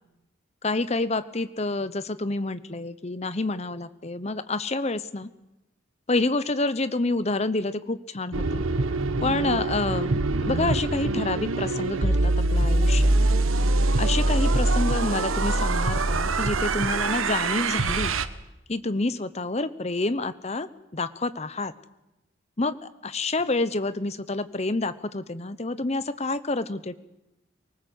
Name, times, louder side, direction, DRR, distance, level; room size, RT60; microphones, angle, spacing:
voice 1, 0.6-5.3 6.1-8.6 9.2-13.1 14.0-18.1 18.7-21.7 22.6-22.8 23.0-27.0, left 2 dB, 30° left, 14 dB, 0.9 m, -28 dB
sound 1, 8.3-18.3, right 2 dB, 85° right, 1.2 m, -24 dB
24.5 x 19.0 x 8.0 m, 0.93 s
head